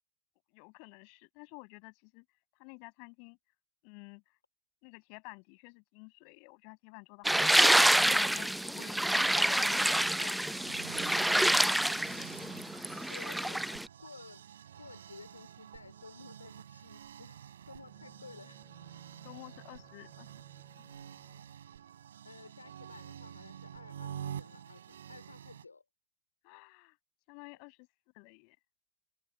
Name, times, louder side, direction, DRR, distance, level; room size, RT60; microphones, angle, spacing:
voice 1, 0.5-2.2 2.6-3.4 3.8-4.2 4.8-9.0 9.3-11.0 19.2-20.3 20.5-20.6 26.4-27.0 27.3-27.9 28.1-28.6, left 40 dB or more, 45° left, 7.8 m, -51 dB
sound 1, 7.2-13.9, right 1 dB, ahead, 0.7 m, -27 dB
sound 2, 10.5-25.7, right 9 dB, 65° right, 6.5 m, -48 dB
voice 2, 13.1-13.7 14.0-14.5 14.8-18.6 22.2-25.8, left 4 dB, 80° left, 3.3 m, -53 dB
Bowed string instrument, 17.6-21.7, right 7 dB, 20° right, 5.4 m, -60 dB
figure-of-eight pair, 90°, 0 cm